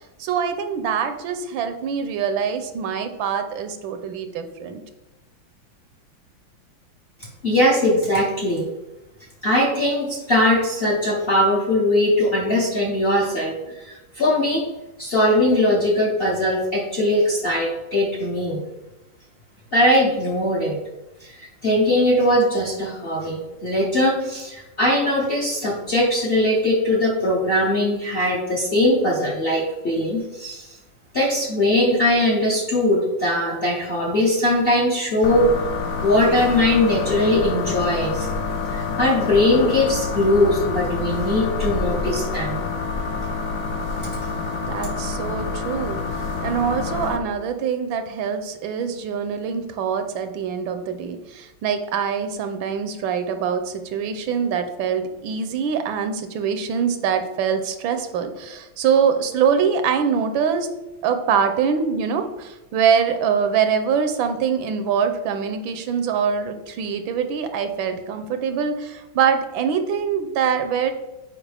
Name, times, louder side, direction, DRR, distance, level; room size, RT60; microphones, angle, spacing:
voice 1, 0.2-4.8 44.6-46.0 46.4-60.7 61.0-70.9, right 7 dB, 80° right, 8 dB, 1.4 m, -24 dB
voice 2, 7.4-8.7 9.4-14.7 15.0-18.6 19.7-20.8 21.2-30.8 31.1-35.5 36.0-38.3 38.7-42.6, left 1 dB, 45° left, -2 dB, 0.8 m, -20 dB
sound 1, 35.2-47.2, left 4 dB, 75° left, 0.7 m, -27 dB
7.2 x 4.8 x 3.4 m, 1.0 s
omnidirectional pair, 2.2 m